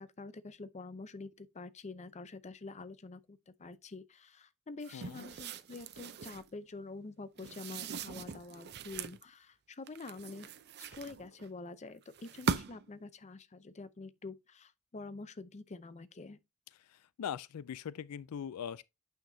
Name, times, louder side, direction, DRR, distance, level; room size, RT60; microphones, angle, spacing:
voice 1, 0.0-10.5 10.8-16.4, left 3 dB, 30° left, 0.5 m, -47 dB
sound 1, 4.8-6.5 7.4-9.2 9.9-11.5 12.1-12.9, right 5 dB, 50° right, 0.6 m, -40 dB
voice 2, 4.9-5.3 16.7-18.8, left 8 dB, 80° left, 0.4 m, -41 dB
8.9 x 5.8 x 2.7 m
head